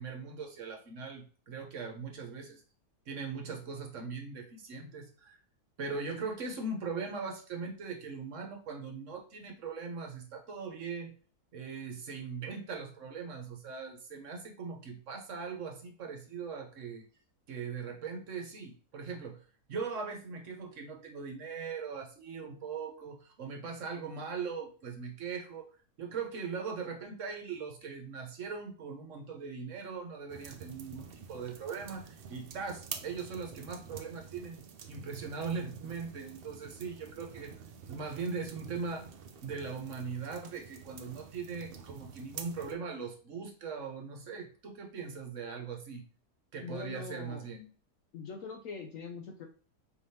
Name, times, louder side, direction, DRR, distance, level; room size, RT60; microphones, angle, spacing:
voice 1, 0.0-2.6 3.1-5.4 5.8-11.1 11.5-17.1 17.5-19.4 19.7-25.7 26.0-37.5 37.9-39.1 39.4-46.0 46.5-47.7, right 5 dB, 55° right, 3 dB, 1.2 m, -40 dB
sound 1, 30.3-42.8, right 6 dB, 85° right, 0.5 m, -48 dB
voice 2, 46.6-47.5 48.1-49.5, left 5 dB, 65° left, 3 dB, 0.9 m, -42 dB
4.5 x 3.5 x 2.8 m, 0.39 s
omnidirectional pair, 1.7 m